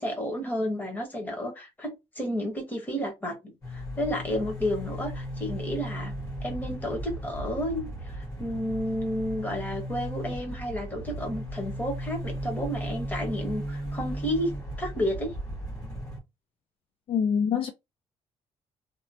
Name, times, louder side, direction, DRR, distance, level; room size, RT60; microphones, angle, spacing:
voice 1, 0.0-6.1 6.4-14.5 14.8-15.3, equal, 15° left, 1.2 m, -31 dB
sound 1, 3.6-16.2, equal, 30° left, 1.4 m, -36 dB
voice 2, 17.1-17.7, left 7 dB, 55° left, 0.4 m, -25 dB
2.9 x 2.1 x 2.6 m
cardioid pair, 120°, 11 cm